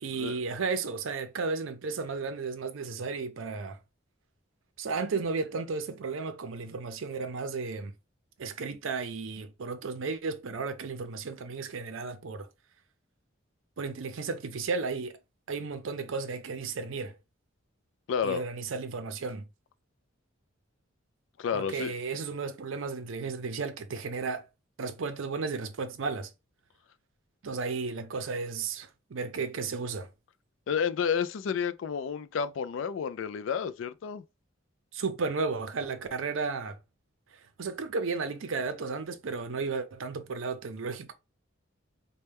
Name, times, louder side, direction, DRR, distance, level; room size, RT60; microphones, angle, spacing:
voice 1, 0.0-3.8 4.8-7.9 8.4-12.5 13.8-15.2 15.5-17.1 18.2-19.5 21.5-24.5 24.8-26.3 27.4-30.1 34.9-36.8 37.6-41.1, right 4 dB, 70° right, 0.5 m, -34 dB
voice 2, 18.1-18.4 21.4-21.9 30.7-34.2, left 7 dB, 65° left, 0.3 m, -30 dB
4.3 x 2.2 x 3.4 m
head